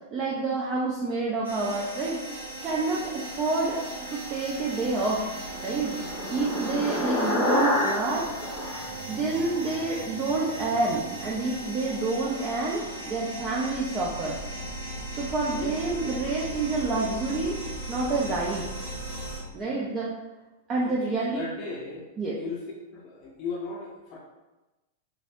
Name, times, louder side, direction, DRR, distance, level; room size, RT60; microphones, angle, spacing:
voice 1, 0.1-2.2 2.6-3.8 4.1-5.3 5.6-6.0 6.3-8.3 9.1-14.4 15.1-17.6 17.9-18.7 19.5-20.1 20.7-21.4 22.2-22.3, right 3 dB, 30° right, -5 dB, 0.5 m, -28 dB
sound 1, 1.4-19.4, right 1 dB, 85° right, 1.1 m, -37 dB
sound 2, 5.1-9.8, left 1 dB, ahead, 1.0 m, -29 dB
voice 2, 20.8-22.1 22.3-22.6 22.9-24.2, left 4 dB, 40° left, -3 dB, 0.5 m, -37 dB
3.2 x 2.5 x 2.6 m, 1.1 s
figure-of-eight pair, 95°, 0 cm